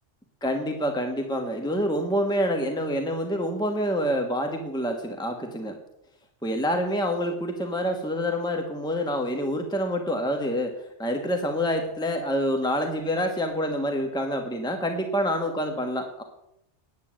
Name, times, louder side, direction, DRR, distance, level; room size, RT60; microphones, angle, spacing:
voice 1, 0.4-5.8 6.4-10.7 11.0-16.2, equal, 5° left, 4 dB, 1.3 m, -27 dB
9.7 x 9.5 x 7.5 m, 0.80 s
omnidirectional pair, 1.2 m